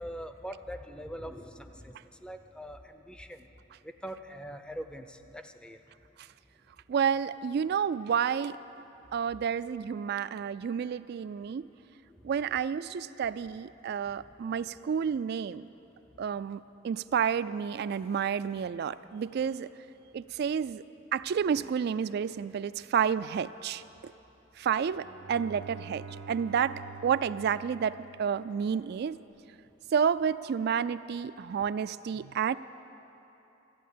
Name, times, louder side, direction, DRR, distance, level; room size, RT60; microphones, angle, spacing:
voice 1, 0.0-3.5 3.8-5.8 12.0-12.3, equal, 5° left, 8 dB, 0.5 m, -43 dB
voice 2, 6.9-8.6 9.1-11.7 12.2-15.7 16.2-19.7 20.1-20.8 21.1-24.1 24.6-26.8 27.0-29.2 29.9-32.6, right 7 dB, 55° right, 15 dB, 0.3 m, -30 dB
Bowed string instrument, 24.8-28.9, right 5 dB, 90° right, 0.7 m, -47 dB
14.0 x 8.6 x 8.3 m, 3.0 s
head